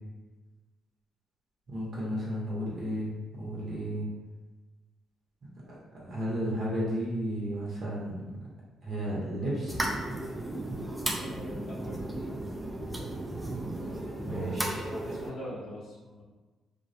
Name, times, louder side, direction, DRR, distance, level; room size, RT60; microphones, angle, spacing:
voice 1, 1.7-4.1 5.6-8.5 8.8-9.8 14.2-14.9, equal, 50° right, -5 dB, 0.8 m, -33 dB
sound 1, 9.7-15.3, right 1 dB, 10° right, 0.3 m, -35 dB
voice 2, 11.1-12.0 14.2-16.2, left 1 dB, 80° left, -6 dB, 0.6 m, -42 dB
2.2 x 2.1 x 2.6 m, 1.2 s
cardioid pair, 90°, 0 cm